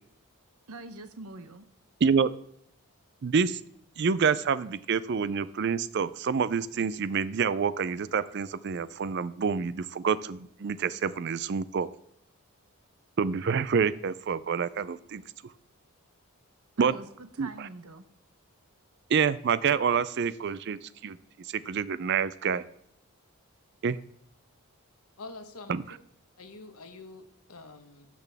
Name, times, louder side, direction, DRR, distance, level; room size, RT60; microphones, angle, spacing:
voice 1, 0.7-1.7 16.8-18.1, right 2 dB, 80° right, 10 dB, 0.9 m, -44 dB
voice 2, 3.2-3.6 4.0-11.9 13.2-15.2 16.8-16.9 17.4-17.5 19.1-21.2 21.5-22.7 23.8-24.0 25.7-26.0, right 6 dB, 50° right, 16 dB, 0.4 m, -27 dB
voice 3, 25.2-25.7 26.4-27.2 27.5-28.1, left 3 dB, 80° left, 7 dB, 1.1 m, -45 dB
12.0 x 6.0 x 3.5 m, 0.72 s
head